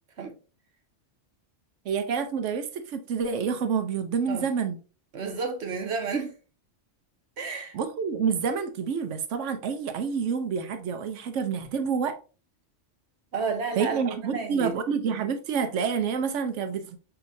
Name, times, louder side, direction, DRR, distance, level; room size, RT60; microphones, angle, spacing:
voice 1, 1.8-4.8 7.7-12.2 13.8-17.0, right 6 dB, 85° right, 1.0 m, -28 dB
voice 2, 5.1-6.3 7.4-7.8 13.3-14.8, right 5 dB, 65° right, 1.2 m, -31 dB
6.8 x 2.8 x 2.6 m
omnidirectional pair, 1.2 m